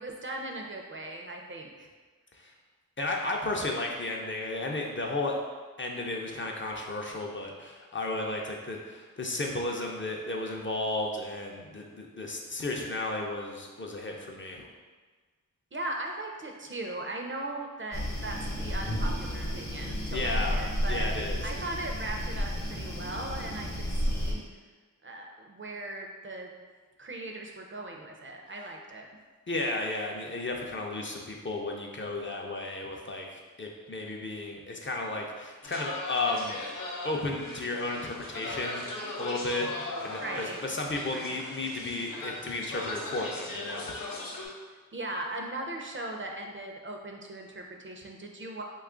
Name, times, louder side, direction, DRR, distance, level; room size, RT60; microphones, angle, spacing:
voice 1, 0.0-1.9 15.7-21.1 21.4-24.4 25.0-26.5 27.0-29.1 40.2-40.6 41.1-41.4 44.9-48.6, right 2 dB, 40° right, 1 dB, 0.4 m, -38 dB
voice 2, 3.0-5.4 5.8-14.6 20.1-20.6 20.9-21.4 29.5-36.6 37.0-38.9 39.2-39.7 40.0-43.9 44.5-44.6, left 2 dB, 35° left, 0 dB, 0.4 m, -33 dB
sound 1, 17.9-24.3, equal, 55° left, 0.8 m, -32 dB
sound 2, 35.6-44.5, left 2 dB, 85° left, 0.6 m, -39 dB
3.1 x 2.3 x 3.6 m, 1.4 s
wide cardioid pair, 60°, 33 cm